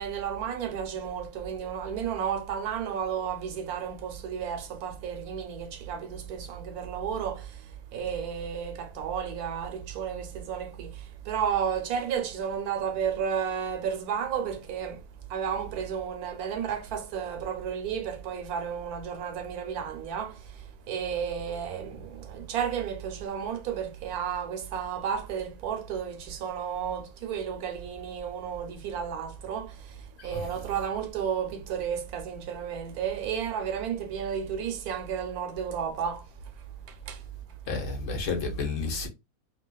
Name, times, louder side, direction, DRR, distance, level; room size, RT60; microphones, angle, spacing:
voice 1, 0.0-37.2, right 7 dB, 90° right, 1.2 m, -33 dB
voice 2, 30.2-30.5 37.7-39.1, left 3 dB, 65° left, 1.1 m, -31 dB
2.9 x 2.5 x 2.2 m
omnidirectional pair, 1.5 m